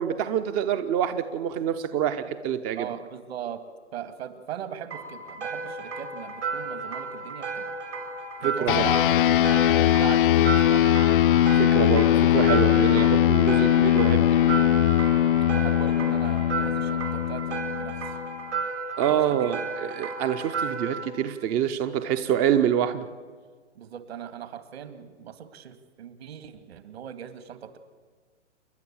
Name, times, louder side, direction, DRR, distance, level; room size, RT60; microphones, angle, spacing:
voice 1, 0.0-2.9 8.4-8.9 11.6-14.6 19.0-23.1, right 9 dB, 20° right, 10 dB, 0.5 m, -26 dB
voice 2, 2.8-3.6 3.9-7.7 8.4-10.9 13.7-13.8 15.5-18.2 19.0-19.7 23.8-27.8, right 9 dB, 60° right, 10 dB, 2.2 m, -39 dB
sound 1, 4.9-21.0, right 4 dB, 80° right, 5.9 m, -34 dB
sound 2, 8.7-18.4, left 11 dB, 50° left, 0.5 m, -21 dB
28.5 x 11.0 x 8.7 m, 1.5 s
hypercardioid pair, 135°, 35 cm